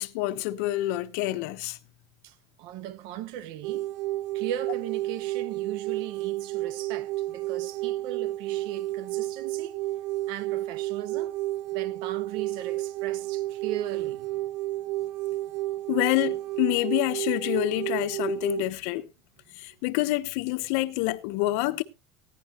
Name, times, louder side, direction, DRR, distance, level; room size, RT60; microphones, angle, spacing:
voice 1, 0.0-1.8 15.9-19.1 19.5-21.8, left 18 dB, 70° left, 0.9 m, -27 dB
voice 2, 2.2-3.9 4.3-9.8 10.3-11.4 11.7-14.5, right 11 dB, 60° right, 0.9 m, -38 dB
sound 1, 3.6-18.6, right 16 dB, 85° right, 0.6 m, -31 dB
16.0 x 10.5 x 2.9 m
cardioid pair, 145°, 9 cm